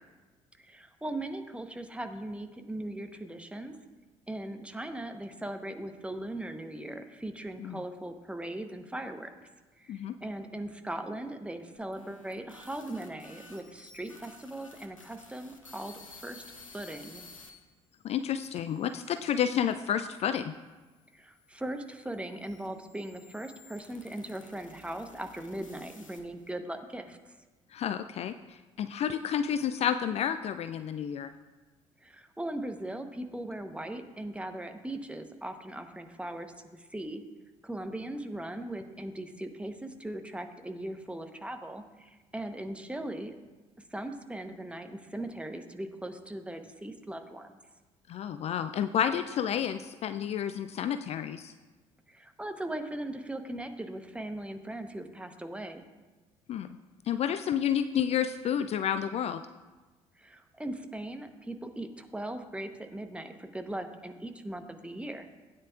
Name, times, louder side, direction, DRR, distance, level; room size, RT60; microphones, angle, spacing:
voice 1, 0.6-3.8 4.3-9.3 9.8-16.4 16.7-17.2 21.1-27.2 32.0-37.2 37.6-43.3 43.9-47.6 52.1-55.8 60.2-65.3, right 1 dB, 5° right, 6 dB, 1.0 m, -39 dB
sound 1, 11.8-17.5 18.2-19.7 20.5-26.5, left 3 dB, 90° left, 0.8 m, -54 dB
voice 2, 18.0-20.5 27.7-31.3 48.1-51.5 56.5-56.8 57.1-59.4, left 9 dB, 40° left, 11 dB, 0.4 m, -30 dB
16.5 x 9.4 x 2.4 m, 1.2 s
figure-of-eight pair, 50°, 16 cm